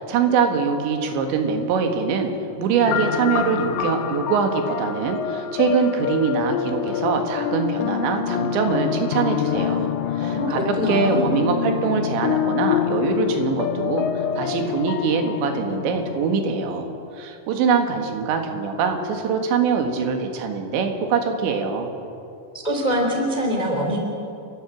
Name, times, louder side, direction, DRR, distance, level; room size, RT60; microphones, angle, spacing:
voice 1, 0.0-2.3 2.6-9.9 10.2-21.9, right 5 dB, 85° right, 5 dB, 4.0 m, -23 dB
sound 1, 2.8-16.4, left 9 dB, 90° left, 3.2 m, -26 dB
voice 2, 10.2-11.3 22.5-24.0, equal, 15° left, 1 dB, 1.8 m, -24 dB
30.0 x 12.0 x 7.4 m, 2.7 s
omnidirectional pair, 5.1 m